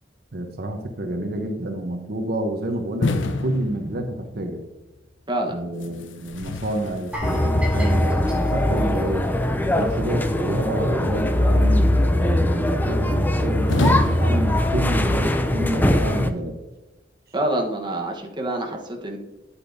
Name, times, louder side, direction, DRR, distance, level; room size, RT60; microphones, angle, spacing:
voice 1, 0.3-4.6 5.5-9.3 9.7-16.5, right 1 dB, 55° right, 4 dB, 0.9 m, -29 dB
sound 1, 3.0-4.5 5.8-7.8 10.5-11.3 13.7-15.1, left 3 dB, 80° left, 0.6 m, -29 dB
voice 2, 5.3-5.6 17.3-19.2, right 1 dB, 25° right, 1 dB, 1.1 m, -26 dB
sound 2, 7.1-10.1 10.4-10.6 11.1-11.2, left 1 dB, 5° right, 2.7 m, -38 dB
sound 3, 7.2-16.3, left 1 dB, 10° left, 0.4 m, -21 dB
8.9 x 8.3 x 2.6 m, 1.1 s
head